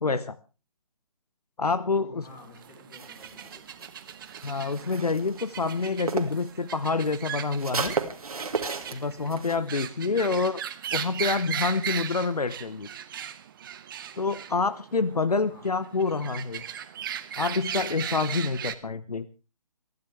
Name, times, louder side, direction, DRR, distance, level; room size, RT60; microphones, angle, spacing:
voice 1, 0.0-0.4 1.6-2.2 4.4-8.0 8.9-10.5 10.9-12.9 14.2-16.6 17.4-19.3, left 4 dB, 80° left, 15 dB, 0.9 m, -27 dB
voice 2, 1.9-3.9 10.0-10.4 15.5-15.8, left 3 dB, 20° left, 2 dB, 5.3 m, -49 dB
sound 1, 2.3-18.7, right 9 dB, 35° right, 1.0 m, -38 dB
sound 2, 2.9-6.5 6.8-9.6, right 4 dB, 70° right, 2.1 m, -34 dB
28.0 x 10.5 x 3.3 m, 0.32 s
figure-of-eight pair, 140°, 19 cm